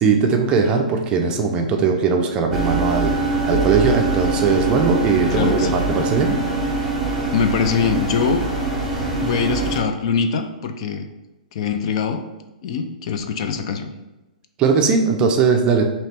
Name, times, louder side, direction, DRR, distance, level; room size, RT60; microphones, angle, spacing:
voice 1, 0.0-3.1 3.5-6.4 14.6-15.9, right 5 dB, 20° right, 3 dB, 0.4 m, -19 dB
sound 1, 2.5-9.8, right 3 dB, 5° left, 0.8 m, -23 dB
voice 2, 5.3-5.8 7.3-8.5 9.2-11.1 11.5-12.2 12.6-13.9, left 6 dB, 45° left, 7 dB, 0.4 m, -23 dB
3.2 x 2.9 x 4.3 m, 1.0 s
hypercardioid pair, 150°, 4 cm